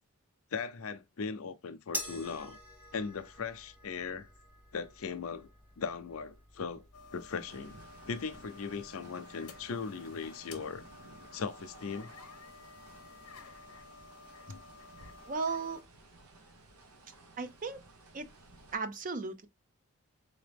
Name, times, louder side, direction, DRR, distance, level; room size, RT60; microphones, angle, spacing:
voice 1, 0.5-2.6 2.9-4.3 4.7-5.5 5.8-6.8 7.1-7.8 8.1-10.8 11.3-12.1 14.5-14.6, left 5 dB, 70° left, 0.5 m, -38 dB
sound 1, 1.9-8.5, equal, 10° right, 1.0 m, -47 dB
sound 2, 6.9-15.8, left 4 dB, 90° left, 0.9 m, -53 dB
sound 3, 7.5-18.8, right 2 dB, 90° right, 0.9 m, -56 dB
voice 2, 15.3-15.8 17.4-17.8 18.1-18.3 18.7-19.5, right 4 dB, 40° right, 0.5 m, -35 dB
3.9 x 2.8 x 3.4 m
head